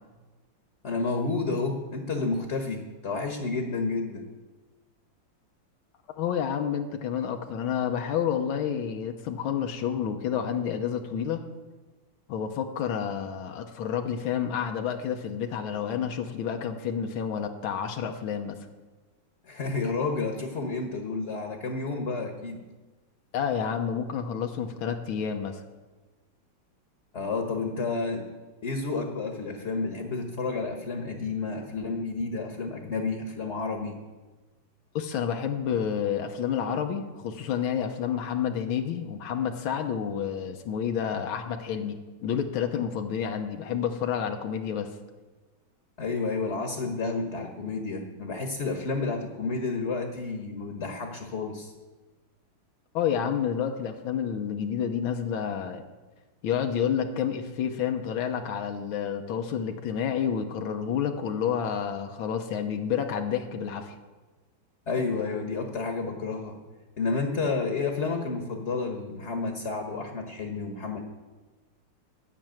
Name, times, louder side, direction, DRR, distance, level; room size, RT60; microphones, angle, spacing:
voice 1, 0.8-4.3 19.4-22.6 27.1-28.3 28.6-34.0 46.0-51.7 64.9-66.6 67.0-71.0, left 3 dB, 40° left, 3 dB, 1.2 m, -30 dB
voice 2, 6.2-11.5 12.3-18.6 23.3-25.6 34.9-42.0 42.2-44.9 52.9-55.8 56.4-64.0, left 8 dB, 85° left, 5 dB, 1.7 m, -29 dB
13.0 x 6.1 x 8.9 m, 1.3 s
omnidirectional pair, 2.2 m